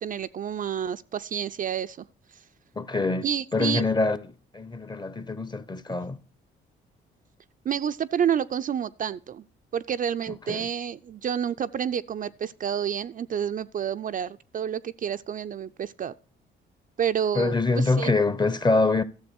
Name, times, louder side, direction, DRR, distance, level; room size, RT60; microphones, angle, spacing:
voice 1, 0.0-2.1 3.2-3.8 7.6-9.4 9.7-16.1 17.0-18.1, right 8 dB, 45° right, 0.4 m, -29 dB
voice 2, 2.8-3.3 3.5-6.2 10.3-10.7 17.3-19.0, left 3 dB, 20° left, 0.7 m, -25 dB
13.0 x 7.0 x 4.4 m
cardioid pair, 90°, 20 cm